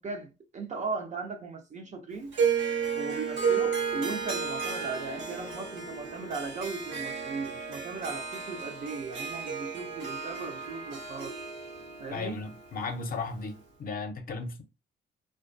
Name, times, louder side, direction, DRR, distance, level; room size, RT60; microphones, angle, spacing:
voice 1, 0.0-2.3 2.9-11.4 12.0-12.4, right 4 dB, 35° right, 0.5 m, -37 dB
Harp, 2.3-13.6, right 6 dB, 75° right, 0.8 m, -33 dB
voice 2, 12.1-13.5 13.8-14.6, left 4 dB, 45° left, 0.6 m, -35 dB
2.3 x 2.2 x 2.5 m
cardioid pair, 90°, 20 cm